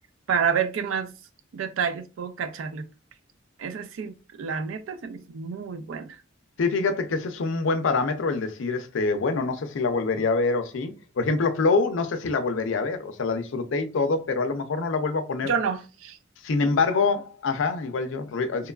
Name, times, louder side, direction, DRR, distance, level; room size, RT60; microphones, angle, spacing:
voice 1, 0.3-1.1 1.5-2.9 3.6-6.2 15.4-16.2, right 6 dB, 85° right, 0.4 m, -29 dB
voice 2, 6.6-15.5 16.4-18.7, left 4 dB, 75° left, 0.4 m, -25 dB
2.9 x 2.2 x 2.3 m
head